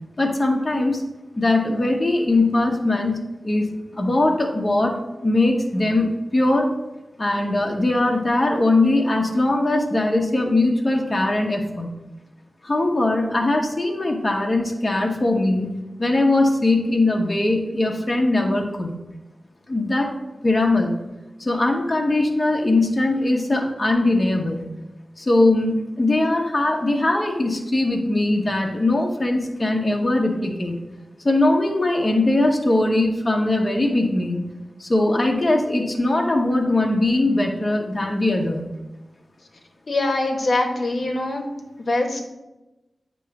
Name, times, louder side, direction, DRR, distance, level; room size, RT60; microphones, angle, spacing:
voice 1, 0.2-1.0 1.4-3.2 3.4-3.7 3.9-4.9 5.2-6.7 7.2-11.9 12.6-15.7 16.0-18.9 19.7-20.1 20.4-20.9 21.4-24.7 25.2-30.8 31.2-34.4 34.8-38.7, left 2 dB, 30° left, 1 dB, 1.1 m, -20 dB
voice 2, 39.9-41.4 41.8-42.2, left 2 dB, 55° left, 3 dB, 1.1 m, -23 dB
9.0 x 3.1 x 5.8 m, 1.0 s
wide cardioid pair, 80°, 0 cm